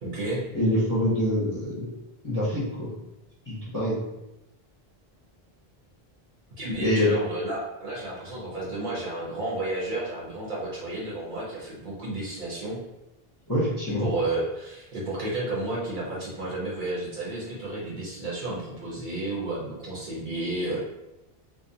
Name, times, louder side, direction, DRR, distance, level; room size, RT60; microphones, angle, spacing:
voice 1, 0.0-0.4 6.5-12.8 14.0-20.8, right 2 dB, 55° right, -6 dB, 0.8 m, -32 dB
voice 2, 0.5-1.9 2.2-2.9 3.5-4.0 6.8-7.1 13.5-14.1, left 1 dB, 25° left, -9 dB, 0.6 m, -25 dB
2.4 x 2.1 x 2.7 m, 0.92 s
omnidirectional pair, 1.0 m